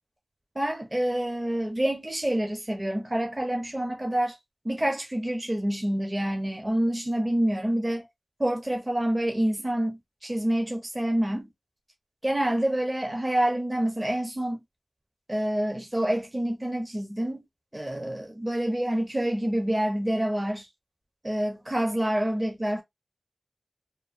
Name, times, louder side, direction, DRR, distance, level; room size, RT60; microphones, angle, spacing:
voice 1, 0.6-4.4 4.6-8.1 8.4-11.5 12.2-14.6 15.3-17.4 17.7-20.7 21.2-22.8, right 1 dB, 25° right, 0.7 m, -27 dB
3.1 x 2.1 x 2.4 m
wide cardioid pair, 65°, 0 cm